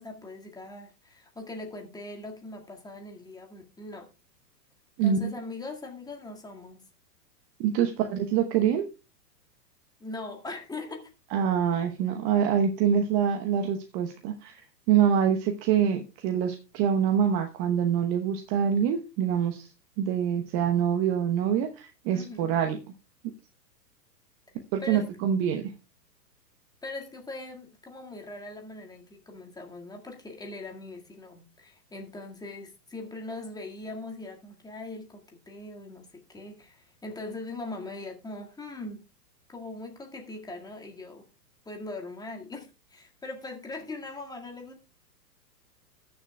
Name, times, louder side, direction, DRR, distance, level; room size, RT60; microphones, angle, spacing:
voice 1, 0.0-4.1 5.0-6.9 10.0-11.1 22.1-22.5 24.8-25.1 26.8-39.0 39.5-41.3 41.7-44.8, left 2 dB, 10° left, 1.9 m, -41 dB
voice 2, 5.0-5.3 7.6-8.9 11.3-19.7 20.0-22.8 24.7-25.7, right 8 dB, 35° right, 1.0 m, -25 dB
20.0 x 6.9 x 2.3 m
hypercardioid pair, 120°, 49 cm